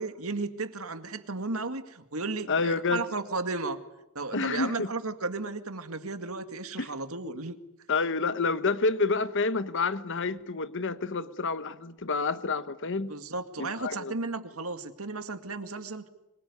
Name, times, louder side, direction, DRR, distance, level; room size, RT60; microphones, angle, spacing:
voice 1, 0.0-3.8 4.2-7.6 13.1-16.1, right 3 dB, 70° right, 9 dB, 2.1 m, -34 dB
voice 2, 2.5-3.0 4.3-4.9 6.8-6.9 7.9-13.1 13.6-14.1, left 4 dB, 60° left, 13 dB, 1.1 m, -28 dB
25.5 x 22.5 x 9.7 m, 0.91 s
head